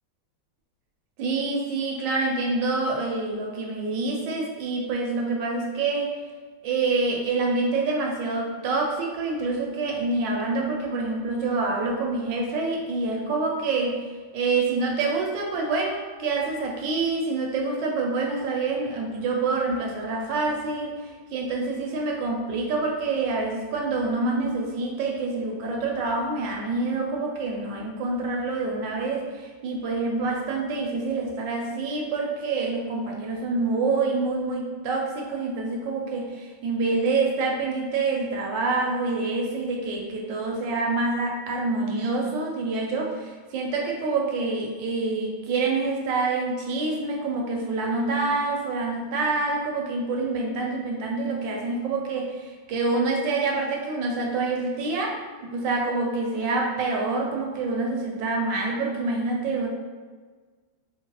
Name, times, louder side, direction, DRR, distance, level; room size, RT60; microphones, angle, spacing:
voice 1, 1.2-6.2 6.6-14.1 14.3-59.7, right 3 dB, 75° right, 0 dB, 1.2 m, -27 dB
4.5 x 2.0 x 2.8 m, 1.4 s
omnidirectional pair, 2.2 m